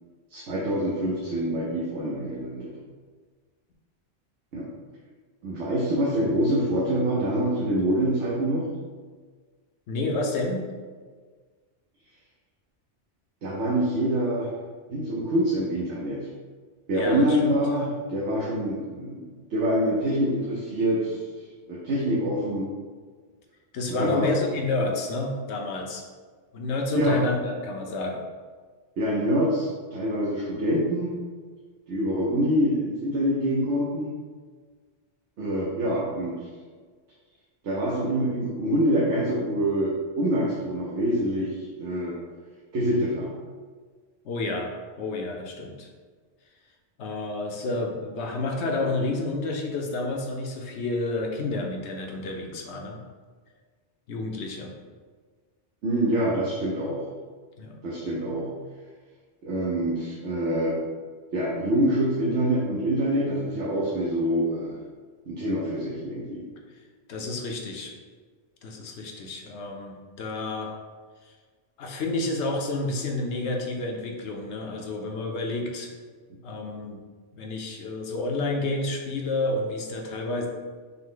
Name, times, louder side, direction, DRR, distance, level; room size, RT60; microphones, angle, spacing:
voice 1, 0.3-2.7 4.5-4.7 5.4-8.7 13.4-14.5 14.9-16.2 16.9-21.2 21.7-22.7 24.0-24.3 26.9-27.2 29.0-31.2 31.9-34.1 35.4-36.5 37.6-42.2 42.7-43.3 55.8-57.0 57.8-58.5 59.4-60.7 61.3-64.8 65.3-66.4, equal, 75° right, -5 dB, 1.1 m, -25 dB
voice 2, 9.9-10.6 16.9-17.5 23.7-26.0 26.5-28.2 44.2-44.7 45.0-45.9 47.0-53.0 54.1-54.7 57.6-57.7 67.1-67.9 68.6-70.7 71.8-75.9 76.4-77.0 77.3-80.5, left 2 dB, 70° left, 1 dB, 0.9 m, -29 dB
5.8 x 2.1 x 3.7 m, 1.5 s
omnidirectional pair, 1.2 m